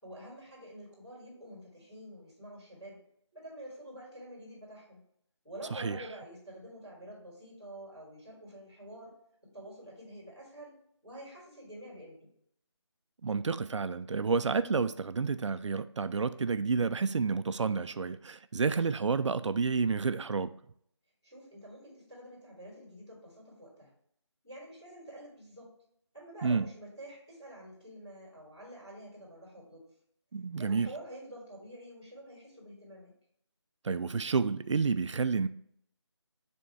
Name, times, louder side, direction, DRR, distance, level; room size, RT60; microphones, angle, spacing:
voice 1, 0.0-3.0 3.3-5.0 5.4-9.1 9.5-10.7 11.0-12.3 21.2-23.9 24.4-25.7 26.1-29.8 30.6-33.1, right 1 dB, 10° left, 2.9 m, -48 dB
voice 2, 5.7-6.0 13.2-20.5 26.4-26.7 30.3-30.9 33.8-35.5, right 5 dB, 80° right, 0.4 m, -30 dB
6.8 x 3.6 x 4.6 m
figure-of-eight pair, 180°, 15 cm